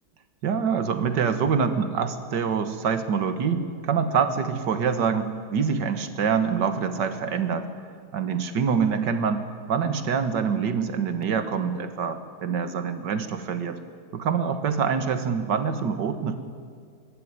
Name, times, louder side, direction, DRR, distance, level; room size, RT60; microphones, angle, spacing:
voice 1, 0.4-7.7 8.1-13.8 14.1-16.4, right 6 dB, 80° right, 9 dB, 2.0 m, -25 dB
23.0 x 12.5 x 9.8 m, 2.1 s
omnidirectional pair, 1.9 m